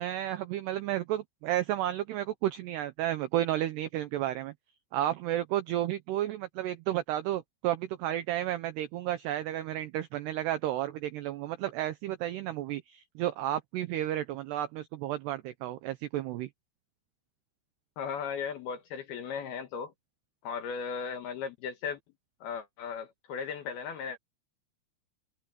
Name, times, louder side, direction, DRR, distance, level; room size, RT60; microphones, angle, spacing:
voice 1, 0.0-4.5 4.9-16.5, right 13 dB, 85° right, 2.4 m, -32 dB
voice 2, 18.0-19.9 20.4-22.0 22.4-24.2, left 6 dB, 65° left, 2.7 m, -36 dB
omnidirectional pair, 5.9 m